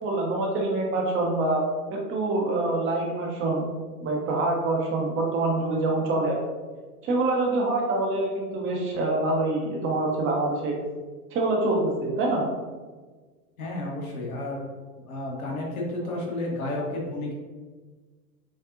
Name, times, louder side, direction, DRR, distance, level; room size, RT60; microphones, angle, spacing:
voice 1, 0.0-1.6 1.9-3.7 4.0-6.4 7.0-10.8 11.3-12.4, right 2 dB, 25° right, -1 dB, 1.0 m, -25 dB
voice 2, 13.6-14.7 15.1-17.3, left 2 dB, 65° left, -2 dB, 1.5 m, -31 dB
7.3 x 2.6 x 2.5 m, 1.4 s
figure-of-eight pair, 95°, 46 cm